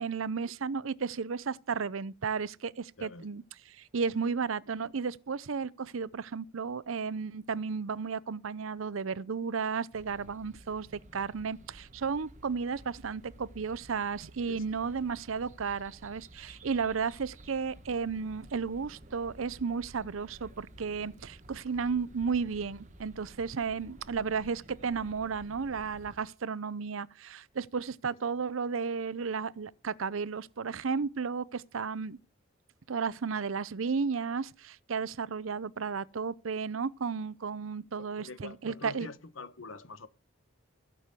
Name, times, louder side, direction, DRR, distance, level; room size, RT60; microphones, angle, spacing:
voice 1, 0.0-3.4 3.8-32.2 32.9-39.1, right 5 dB, 85° right, 0.6 m, -33 dB
sound 1, 9.9-26.2, right 1 dB, 35° right, 1.4 m, -53 dB
voice 2, 14.5-14.8 38.0-40.1, left 3 dB, 75° left, 1.1 m, -45 dB
16.5 x 6.2 x 8.3 m
head